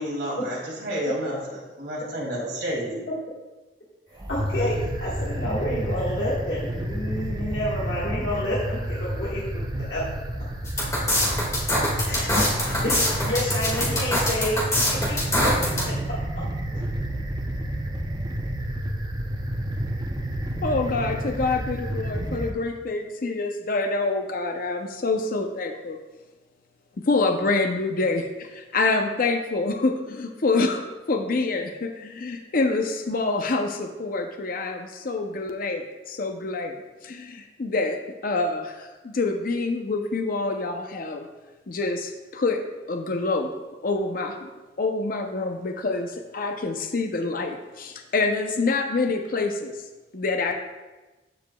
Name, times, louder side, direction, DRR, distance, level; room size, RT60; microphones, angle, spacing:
voice 1, 0.0-1.4 1.8-3.0, equal, 70° right, -3 dB, 2.4 m, -30 dB
voice 2, 4.1-9.6 9.9-10.0 12.0-14.6 14.9-15.5, left 1 dB, 70° left, -8 dB, 1.5 m, -29 dB
sound 1, 4.1-22.5, right 1 dB, 25° right, 0.6 m, -30 dB
sound 2, 10.6-15.8, left 1 dB, 20° left, 1.8 m, -23 dB
voice 3, 20.6-26.0 27.1-36.7 37.0-41.3 41.7-42.6 42.9-43.5 43.8-44.5 44.8-49.7 50.1-50.5, left 3 dB, 50° left, 4 dB, 0.6 m, -26 dB
13.5 x 4.9 x 2.2 m, 1.1 s
head